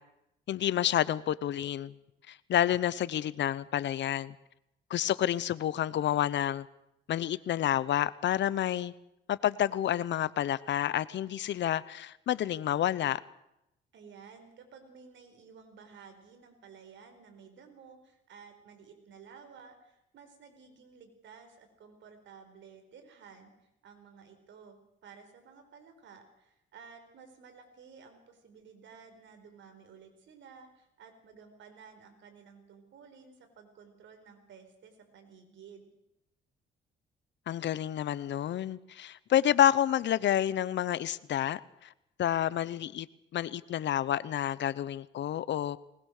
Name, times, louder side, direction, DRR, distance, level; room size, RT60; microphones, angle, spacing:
voice 1, 0.5-1.9 2.3-4.3 4.9-6.7 7.1-8.9 9.3-13.2 37.5-41.9 42.2-43.1 43.3-45.8, left 11 dB, 65° left, 0.9 m, -29 dB
voice 2, 13.9-23.5 23.8-24.8 25.0-35.9, right 6 dB, 70° right, 4.5 m, -54 dB
20.0 x 20.0 x 6.6 m
cardioid pair, 90°, 20 cm